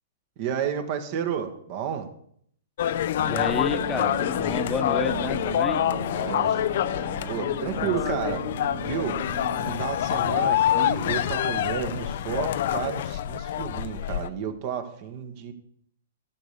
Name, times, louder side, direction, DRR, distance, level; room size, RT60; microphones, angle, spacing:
voice 1, 0.4-2.1 5.9-6.6 7.3-8.4 8.8-9.2 9.5-15.5, right 8 dB, 45° right, 7 dB, 1.4 m, -31 dB
sound 1, 2.8-14.3, left 11 dB, 60° left, 0.5 m, -26 dB
voice 2, 3.2-5.8 7.7-8.0, left 5 dB, 15° left, 7 dB, 1.0 m, -30 dB
sound 2, 3.2-9.8, right 5 dB, 25° right, 2.3 m, -37 dB
12.0 x 6.6 x 6.8 m, 0.66 s
hypercardioid pair, 130°, 0 cm